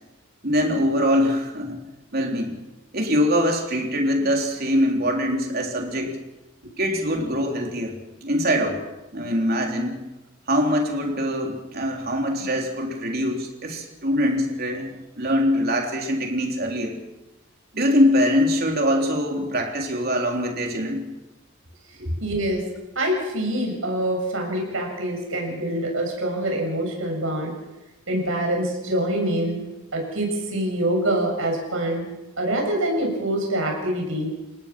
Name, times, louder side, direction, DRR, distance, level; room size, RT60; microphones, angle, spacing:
voice 1, 0.4-1.8 2.1-2.6 2.9-6.2 6.8-8.8 9.1-10.0 10.5-17.0 17.7-21.1 22.1-22.2, equal, 50° right, 2 dB, 3.7 m, -23 dB
voice 2, 22.0-22.6 23.0-27.6 28.1-29.7 29.9-32.1 32.4-34.3, right 1 dB, 70° right, 1 dB, 7.5 m, -25 dB
30.0 x 17.5 x 6.2 m, 1.0 s
head